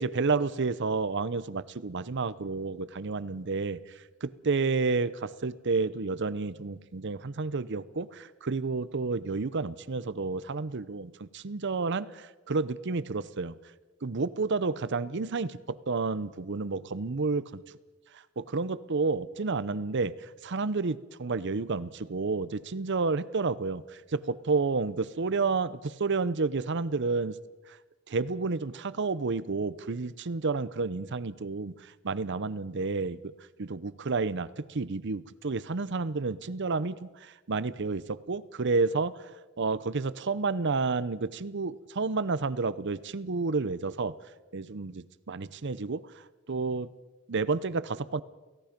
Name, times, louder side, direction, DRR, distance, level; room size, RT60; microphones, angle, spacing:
voice 1, 0.0-3.8 4.2-13.6 14.0-17.6 18.4-27.4 28.1-33.3 33.6-39.3 39.6-44.2 44.5-46.0 46.5-46.9 47.3-48.2, right 4 dB, 55° right, 17 dB, 0.7 m, -30 dB
29.0 x 17.0 x 5.2 m, 1.2 s
head